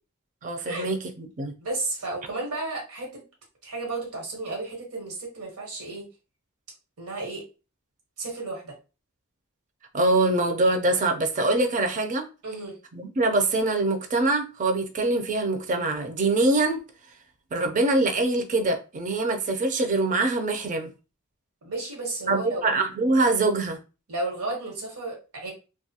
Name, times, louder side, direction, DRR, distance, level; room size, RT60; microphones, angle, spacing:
voice 1, 0.4-1.5 9.9-12.3 12.9-16.8 17.5-20.9 22.3-23.8, right 2 dB, 35° right, 0.4 m, -24 dB
voice 2, 1.6-3.2 3.6-6.1 7.0-7.5 8.2-8.7 12.4-12.8 21.6-22.6 24.1-25.5, right 2 dB, 85° right, 1.2 m, -33 dB
2.6 x 2.3 x 2.7 m
head